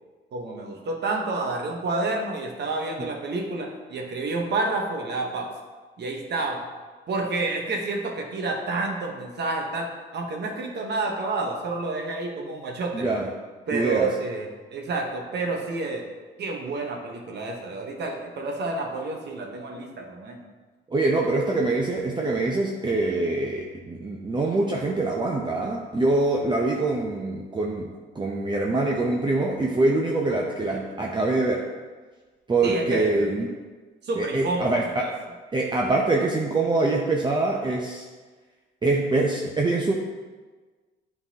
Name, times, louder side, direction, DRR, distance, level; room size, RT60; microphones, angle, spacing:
voice 1, 0.3-5.5 6.0-6.7 7.1-13.1 13.7-16.0 16.4-20.4 32.6-33.3 34.0-35.1, right 3 dB, 60° right, 1 dB, 1.0 m, -29 dB
voice 2, 12.9-13.3 13.7-14.1 20.9-31.7 32.5-33.5 34.2-35.1 35.5-38.1 38.8-39.9, right 2 dB, 25° right, -1 dB, 0.6 m, -24 dB
8.7 x 3.9 x 2.8 m, 1.4 s
cardioid pair, 90°, 20 cm